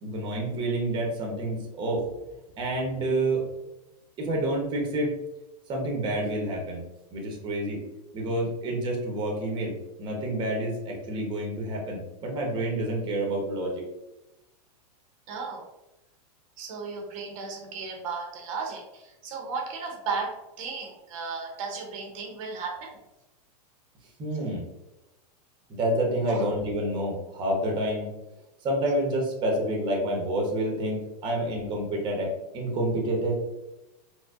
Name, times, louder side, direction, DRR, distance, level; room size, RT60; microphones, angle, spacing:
voice 1, 0.0-2.0 2.6-3.4 4.2-5.1 5.7-6.8 7.1-7.8 8.1-9.7 10.0-13.8 24.2-24.7 25.7-28.1 28.6-33.4, right 1 dB, 20° right, -1 dB, 0.7 m, -28 dB
voice 2, 15.3-15.7 16.6-23.0 26.2-26.5 31.3-31.4, right 4 dB, 55° right, 1 dB, 0.7 m, -35 dB
4.4 x 2.1 x 2.4 m, 0.96 s
supercardioid pair, 150°, 21 cm